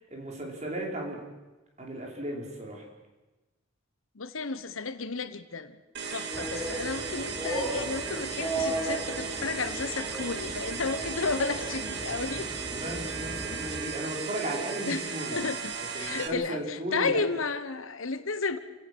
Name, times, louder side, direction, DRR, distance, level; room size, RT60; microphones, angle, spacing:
voice 1, 0.1-1.2 1.8-2.8 12.7-15.4 15.9-17.2, right 1 dB, 35° right, 0 dB, 4.9 m, -35 dB
voice 2, 4.1-5.8 6.1-12.5 13.5-13.6 14.9-18.6, left 4 dB, 75° left, 11 dB, 1.2 m, -33 dB
sound 1, 5.9-16.3, right 5 dB, 55° right, 2.1 m, -36 dB
sound 2, 6.3-13.8, right 1 dB, 5° right, 3.7 m, -36 dB
29.0 x 17.0 x 6.3 m, 1.1 s
head